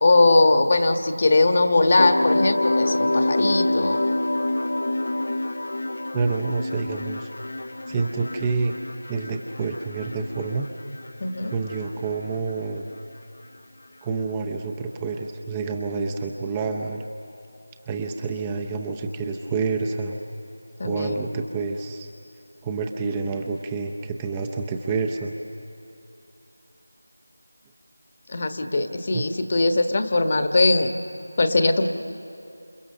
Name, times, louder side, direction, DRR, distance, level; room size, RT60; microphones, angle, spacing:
voice 1, 0.0-4.1 11.2-11.5 20.8-21.3 28.3-30.9 31.4-31.9, left 2 dB, 35° left, 7 dB, 1.4 m, -20 dB
sound 1, 2.0-11.1 11.4-12.1, left 1 dB, 65° left, 1.0 m, -26 dB
voice 2, 6.1-7.3 7.9-8.8 9.1-10.7 11.5-12.9 14.0-17.1 17.9-20.2 20.8-22.1 22.6-25.3 29.1-29.2, right 4 dB, 10° right, 3 dB, 0.7 m, -28 dB
29.0 x 28.5 x 6.7 m, 2.7 s
figure-of-eight pair, 170°, 0 cm